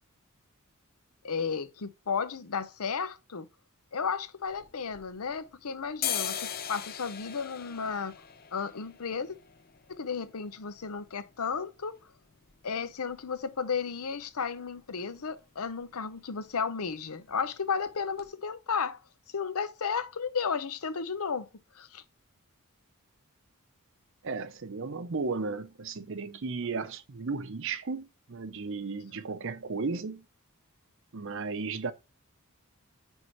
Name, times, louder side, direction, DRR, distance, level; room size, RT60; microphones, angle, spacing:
voice 1, 1.2-3.5 3.9-8.2 8.5-9.4 9.9-12.1 12.6-19.0 19.3-22.0, left 5 dB, 85° left, 0.8 m, -33 dB
sound 1, 4.4-5.5 5.8-13.6 13.9-14.0 14.2-14.8 15.1-15.3 15.6-15.8 16.1-16.8 17.2-17.3 17.8-17.9 18.2-18.3, left 9 dB, 45° left, 0.7 m, -40 dB
voice 2, 24.2-30.2 31.1-31.9, right 4 dB, 60° right, 0.6 m, -35 dB
9.4 x 3.6 x 3.0 m
head